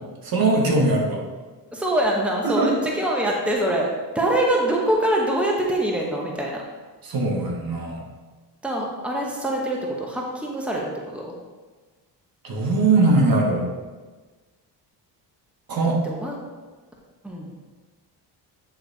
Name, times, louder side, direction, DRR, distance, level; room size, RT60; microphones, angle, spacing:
voice 1, 0.2-1.2 2.4-2.7 7.0-8.1 12.4-13.7 15.7-16.0, right 2 dB, 55° right, -1 dB, 1.5 m, -21 dB
voice 2, 1.7-3.9 4.1-6.6 8.6-11.3 16.0-16.4 17.2-17.5, right 1 dB, 5° right, -1 dB, 1.1 m, -24 dB
9.1 x 3.3 x 4.1 m, 1.3 s
cardioid pair, 85°, 43 cm